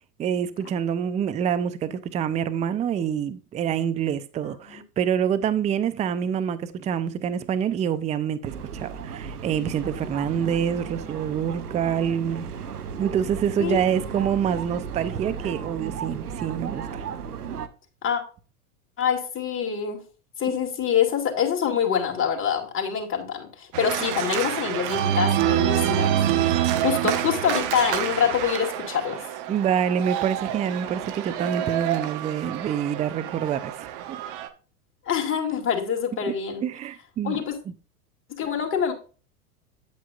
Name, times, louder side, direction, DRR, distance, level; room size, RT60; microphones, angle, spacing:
voice 1, 0.2-12.5 13.0-17.0 20.5-20.6 29.5-33.9 36.3-36.4 36.6-37.7, right 8 dB, 15° right, 0.5 m, -26 dB
sound 1, 8.4-17.7, right 7 dB, 85° right, 1.0 m, -35 dB
voice 2, 19.0-20.0 20.4-26.2 26.7-29.2 35.1-36.6 37.2-37.5 38.3-38.9, left 7 dB, 25° left, 2.5 m, -25 dB
Organ, 23.7-34.5, right 11 dB, 45° right, 1.1 m, -27 dB
8.9 x 8.4 x 2.4 m
hypercardioid pair, 100°, 45 cm